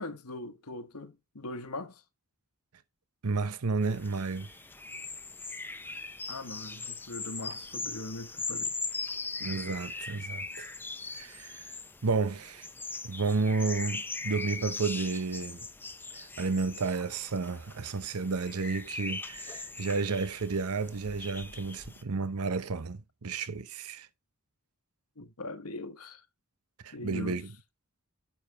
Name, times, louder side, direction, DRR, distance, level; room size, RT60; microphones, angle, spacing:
voice 1, 0.0-2.0 6.3-8.7 9.4-9.5 25.2-26.2 26.9-27.4, left 2 dB, 85° left, 1.4 m, -41 dB
voice 2, 3.2-4.5 9.4-10.7 11.1-11.7 12.0-12.7 13.0-15.6 16.1-24.1 26.8-27.5, right 4 dB, 85° right, 0.8 m, -32 dB
sound 1, 3.8-22.0, left 3 dB, 10° left, 0.6 m, -40 dB
9.0 x 7.1 x 3.3 m
head